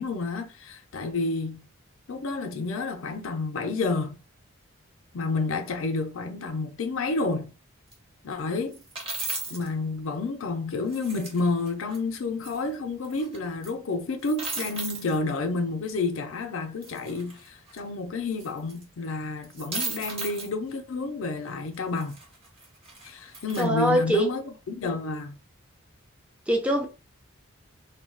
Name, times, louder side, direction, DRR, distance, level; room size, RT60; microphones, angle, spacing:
voice 1, 0.0-1.6 2.1-4.2 5.1-7.5 8.2-8.8 9.5-22.2 23.0-25.3, left 3 dB, 65° left, 0.5 m, -30 dB
sound 1, 7.9-8.0 8.7-9.7 10.9-12.0 12.4-12.6 13.0-13.4 13.6-13.7 14.2-15.2 16.8-17.8 18.4-19.1 19.4-20.5 21.7-23.7, right 3 dB, 25° right, 0.8 m, -36 dB
voice 2, 23.6-24.3 26.5-26.9, right 1 dB, 5° right, 0.4 m, -23 dB
2.3 x 2.1 x 3.7 m
head